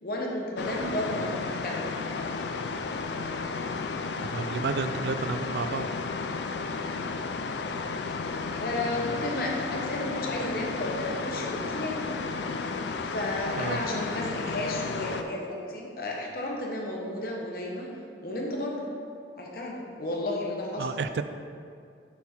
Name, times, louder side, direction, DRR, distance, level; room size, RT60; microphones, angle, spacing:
voice 1, 0.0-1.9 8.6-12.1 13.1-17.9 18.2-18.9 19.4-20.9, left 1 dB, 55° left, -1 dB, 1.0 m, -33 dB
sound 1, 0.6-15.2, left 4 dB, 75° left, 0.4 m, -33 dB
voice 2, 4.2-5.9 13.6-13.8 20.8-21.2, right 4 dB, 70° right, 10 dB, 0.3 m, -31 dB
6.9 x 4.5 x 4.4 m, 2.3 s
head